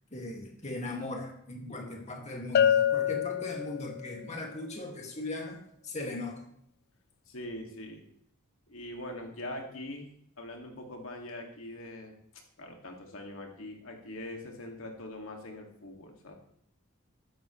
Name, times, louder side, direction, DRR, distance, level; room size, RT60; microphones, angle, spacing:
voice 1, 0.1-6.5, left 2 dB, 35° left, 1 dB, 2.2 m, -39 dB
Bell, 2.5-4.2, left 9 dB, 50° left, 0.4 m, -26 dB
voice 2, 7.3-8.0 8.7-10.1 10.4-12.1 12.6-16.3, left 1 dB, 75° left, 2 dB, 2.3 m, -42 dB
14.5 x 12.5 x 3.2 m, 0.69 s
head